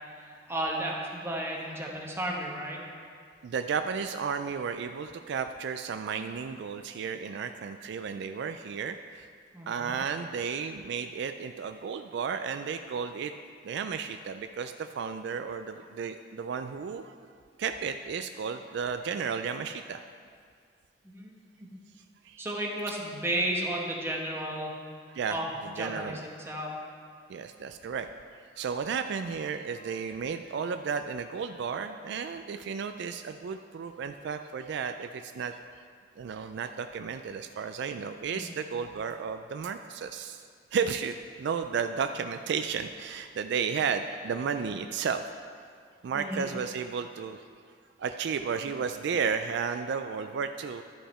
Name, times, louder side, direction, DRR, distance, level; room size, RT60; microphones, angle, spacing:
voice 1, 0.1-2.8 9.5-9.9 21.0-21.7 22.4-24.7 25.3-26.7 38.3-38.6 46.1-46.5, right 1 dB, 15° right, -2 dB, 1.1 m, -33 dB
voice 2, 3.4-9.3 9.7-13.3 13.6-17.1 17.6-20.0 22.2-22.5 25.1-25.4 25.6-26.2 27.3-28.1 28.6-35.6 36.2-40.4 40.7-45.2 46.0-47.5 48.0-50.8, right 6 dB, 65° right, 8 dB, 0.3 m, -33 dB
12.0 x 5.5 x 4.3 m, 2.1 s
head